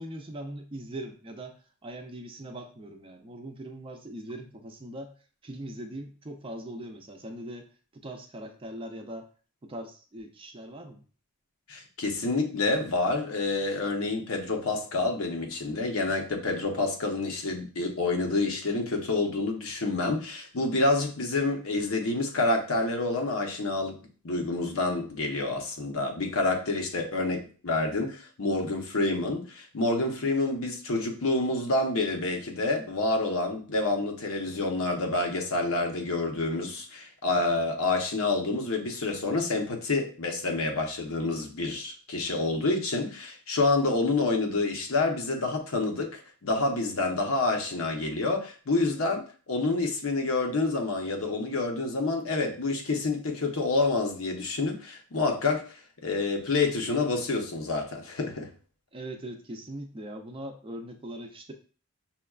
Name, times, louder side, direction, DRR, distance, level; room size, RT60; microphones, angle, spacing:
voice 1, 0.0-5.1 5.4-9.3 9.6-11.0 58.9-61.5, right 1 dB, 25° right, 0.4 m, -41 dB
voice 2, 11.7-24.0 24.2-55.8 56.0-58.5, left 3 dB, 75° left, 0.8 m, -28 dB
5.6 x 2.2 x 2.3 m
head